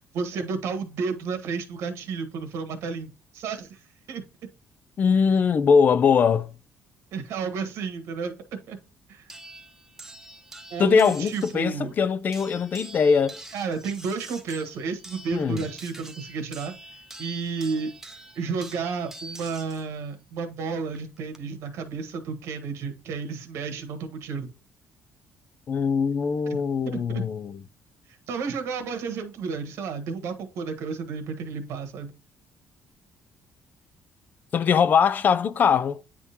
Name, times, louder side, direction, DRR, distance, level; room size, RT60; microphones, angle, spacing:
voice 1, 0.1-3.8 4.1-4.2 7.1-8.3 8.7-8.8 9.1-9.3 10.7-11.9 13.5-16.7 17.2-17.9 18.3-24.5 26.8-27.2 28.3-32.1, right 5 dB, 80° right, 1.4 m, -32 dB
voice 2, 5.0-6.5 10.8-13.4 15.3-15.7 25.7-27.6 34.5-36.0, left 6 dB, 40° left, 0.4 m, -21 dB
sound 1, 9.3-11.7 12.3-19.8 20.9-21.4, right 2 dB, 10° right, 0.7 m, -45 dB
9.3 x 3.6 x 2.8 m
cardioid pair, 140°, 5 cm